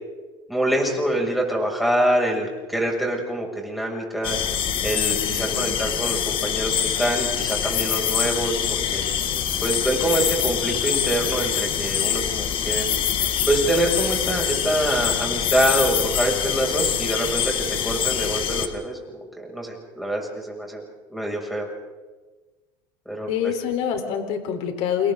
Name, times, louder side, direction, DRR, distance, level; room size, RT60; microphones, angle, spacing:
voice 1, 0.5-4.4 4.8-9.1 9.6-12.9 13.5-20.8 21.1-21.7 23.0-23.5, right 1 dB, ahead, -1 dB, 6.8 m, -25 dB
sound 1, 4.2-18.7, left 9 dB, 45° left, 2.0 m, -25 dB
voice 2, 5.2-5.8 23.3-25.1, left 8 dB, 60° left, 5 dB, 4.0 m, -26 dB
29.0 x 27.5 x 3.9 m, 1.3 s
supercardioid pair, 110°, 12 cm